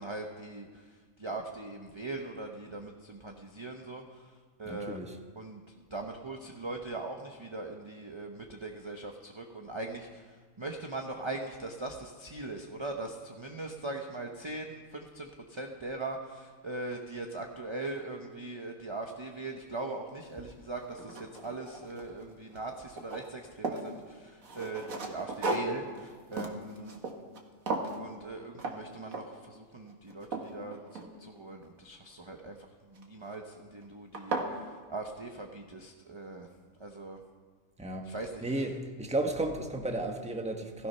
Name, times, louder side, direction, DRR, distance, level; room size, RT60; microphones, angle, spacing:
voice 1, 0.0-5.0 5.4-27.0 28.0-36.5 36.8-37.2 38.0-38.6, right 2 dB, 20° right, 2 dB, 1.0 m, -40 dB
voice 2, 4.6-5.1 37.8-38.1 38.4-40.9, right 2 dB, 5° right, 3 dB, 1.3 m, -33 dB
sound 1, 20.2-20.3 20.8-22.2 22.5-23.9 24.4-27.4 27.7-28.0 28.6-28.8 29.1-29.5 29.9-31.5 33.0-33.4 33.8-33.9 34.1-34.5, right 2 dB, 75° right, 2.1 m, -36 dB
16.5 x 15.5 x 5.6 m, 1.5 s
omnidirectional pair, 1.4 m